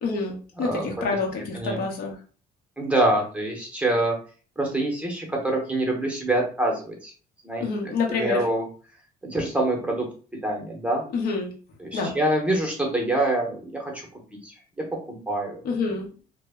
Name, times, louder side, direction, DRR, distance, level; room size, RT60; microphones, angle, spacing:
voice 1, 0.0-2.1 7.6-8.5 11.1-11.5 11.9-12.2 15.6-16.1, left 4 dB, 65° left, 0 dB, 0.7 m, -27 dB
voice 2, 2.8-4.2 4.6-7.1 7.4-7.7 8.1-8.6 9.2-10.1 10.4-11.0 11.8-14.1 14.4-15.6, right 1 dB, 5° right, 0 dB, 0.7 m, -25 dB
2.0 x 2.0 x 3.4 m, 0.39 s
cardioid pair, 110°, 17 cm